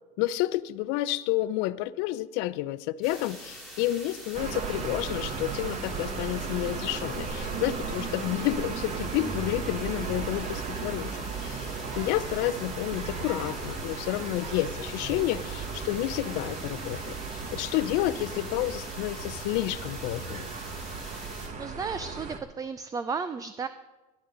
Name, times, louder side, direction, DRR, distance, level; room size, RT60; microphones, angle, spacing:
voice 1, 0.2-20.5, left 15 dB, 65° left, 16 dB, 0.6 m, -30 dB
sound 1, 3.0-21.5, equal, ahead, 5.9 m, -45 dB
sound 2, 4.3-22.4, right 4 dB, 35° right, 1.5 m, -36 dB
sound 3, 11.8-12.3 13.1-13.6 14.4-14.9 16.3-16.4, right 6 dB, 65° right, 1.4 m, -45 dB
voice 2, 21.6-23.7, right 5 dB, 20° right, 12 dB, 0.5 m, -33 dB
18.5 x 11.0 x 3.9 m, 1.1 s
supercardioid pair, 115°, 20 cm